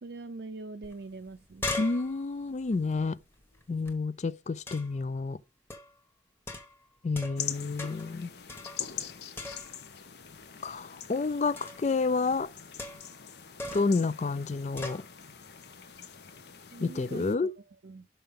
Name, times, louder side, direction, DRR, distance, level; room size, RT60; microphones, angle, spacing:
voice 1, 0.0-1.8 16.7-18.1, right 3 dB, 65° right, 0.5 m, -43 dB
sound 1, 0.8-0.9 1.2-3.9 4.7-5.1 5.7-6.0 6.5-7.5 7.8-8.2 8.5-9.1 9.4-10.0 11.6-11.9 12.8-13.2 13.6-14.0 14.8-15.1, left 2 dB, 15° left, 1.3 m, -40 dB
voice 2, 1.8-3.2 3.7-5.4 7.0-8.3 10.6-12.5 13.7-15.0 16.8-17.5, left 3 dB, 40° left, 0.4 m, -29 dB
sound 2, 7.4-17.3, left 8 dB, 65° left, 0.9 m, -43 dB
5.7 x 5.6 x 5.1 m
head